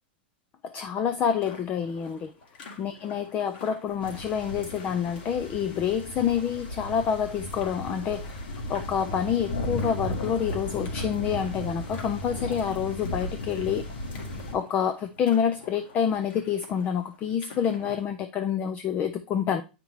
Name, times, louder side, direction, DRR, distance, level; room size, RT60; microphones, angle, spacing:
voice 1, 0.6-2.3 2.8-13.8 14.5-19.6, left 8 dB, 30° left, 0.4 m, -28 dB
sound 1, 1.2-18.1, left 4 dB, 65° left, 1.8 m, -49 dB
sound 2, 4.0-14.5, left 1 dB, 85° left, 3.2 m, -35 dB
8.1 x 5.1 x 3.1 m
hypercardioid pair, 120°, 6 cm